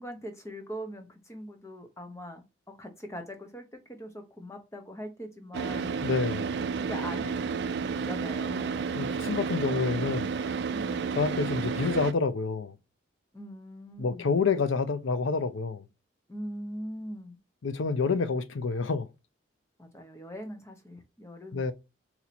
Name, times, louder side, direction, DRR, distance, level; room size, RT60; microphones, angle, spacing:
voice 1, 0.0-6.1 6.6-8.9 10.7-11.1 13.3-14.3 16.3-17.4 19.8-21.7, equal, 15° left, 0.8 m, -42 dB
Car / Idling, 5.5-12.1, right 5 dB, 60° right, 0.3 m, -31 dB
voice 2, 6.0-6.6 9.0-10.4 11.2-12.8 14.0-15.8 17.6-19.1 21.5-21.7, left 4 dB, 85° left, 0.5 m, -28 dB
4.2 x 2.8 x 4.2 m
head